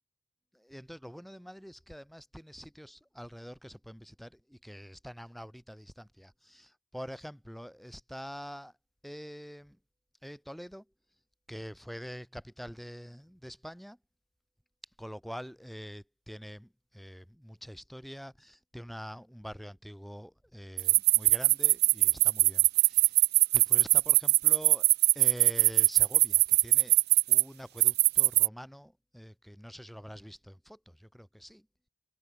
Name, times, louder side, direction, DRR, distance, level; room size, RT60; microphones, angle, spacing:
voice 1, 0.5-8.7 9.0-9.8 10.2-10.8 11.5-14.0 15.0-23.1 23.5-24.9 25.1-27.0 27.3-31.7, equal, ahead, 5.7 m, -45 dB
sound 1, 20.8-27.4 27.8-28.5, right 18 dB, 50° right, 0.7 m, -21 dB
head